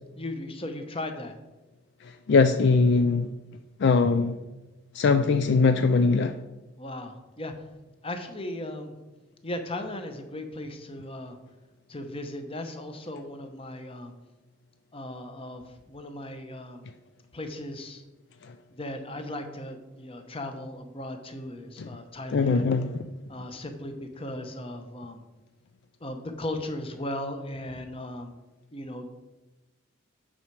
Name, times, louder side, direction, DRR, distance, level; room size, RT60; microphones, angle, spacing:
voice 1, 0.2-1.3 6.8-7.5 8.0-8.9 9.4-11.4 11.9-14.1 14.9-16.9 17.3-18.0 18.8-22.6 23.3-25.2 26.0-28.3 28.7-29.1, left 1 dB, 25° left, 6 dB, 0.8 m, -37 dB
voice 2, 2.3-3.3 3.8-4.4 4.9-6.4 21.8-21.9 22.3-22.9, left 4 dB, 55° left, 8 dB, 0.3 m, -21 dB
8.8 x 5.7 x 4.6 m, 1.1 s
head